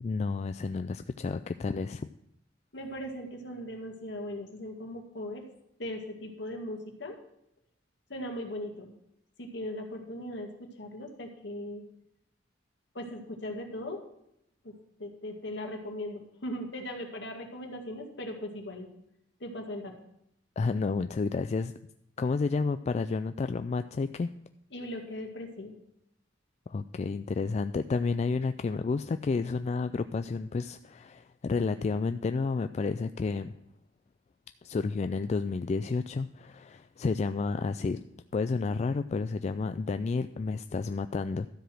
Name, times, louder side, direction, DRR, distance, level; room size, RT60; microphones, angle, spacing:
voice 1, 0.0-2.1 20.6-21.7 22.2-24.3 26.7-33.5 34.6-38.0 38.3-41.5, left 4 dB, 35° left, 10 dB, 0.3 m, -31 dB
voice 2, 2.7-5.4 5.8-7.2 8.1-8.9 9.4-10.5 10.8-11.8 12.9-14.0 14.6-14.7 15.0-18.9 19.4-19.9 24.7-25.8, left 1 dB, 65° left, 2 dB, 2.0 m, -38 dB
13.0 x 5.0 x 7.6 m, 0.80 s
head